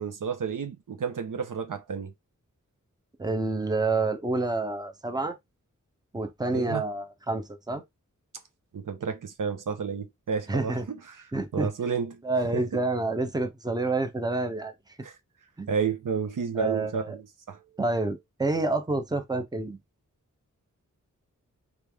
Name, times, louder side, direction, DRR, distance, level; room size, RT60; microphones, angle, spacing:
voice 1, 0.0-2.1 6.5-6.8 8.7-11.2 11.5-12.2 12.5-12.8 15.0-15.1 15.7-17.6, right 6 dB, 80° right, 0.8 m, -31 dB
voice 2, 3.2-5.4 6.1-7.8 10.5-10.9 11.3-11.7 12.2-14.7 15.6-15.7 16.6-17.2 17.8-19.8, right 2 dB, 10° right, 0.8 m, -28 dB
3.4 x 3.1 x 3.4 m
wide cardioid pair, 80°, 32 cm